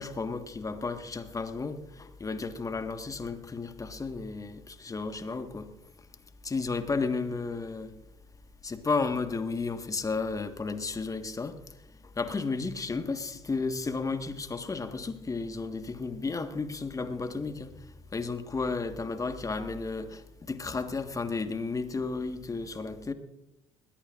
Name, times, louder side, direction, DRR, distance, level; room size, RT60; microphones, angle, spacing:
voice 1, 0.0-5.7 6.4-7.9 8.6-11.5 12.2-17.7 18.1-23.1, left 4 dB, 25° left, 9 dB, 1.5 m, -33 dB
20.5 x 20.5 x 2.5 m, 0.91 s
figure-of-eight pair, 55°, 14 cm